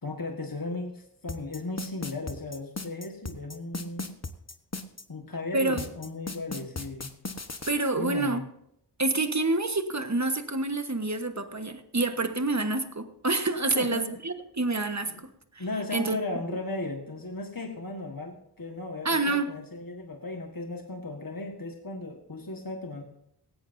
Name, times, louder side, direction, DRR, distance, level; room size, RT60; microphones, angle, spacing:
voice 1, 0.0-4.1 5.1-7.1 8.0-8.4 13.7-14.1 15.1-15.2 15.6-23.0, left 2 dB, 55° left, 2 dB, 1.6 m, -36 dB
sound 1, 1.3-5.0 5.8-7.7, left 3 dB, 40° left, 1.2 m, -36 dB
voice 2, 5.5-5.8 7.7-8.4 9.0-15.1 15.5-15.6 15.9-16.2 16.5-16.6 19.0-19.5, right 2 dB, 40° right, 8 dB, 1.4 m, -27 dB
17.5 x 16.5 x 2.7 m, 0.75 s
wide cardioid pair, 45°, 41 cm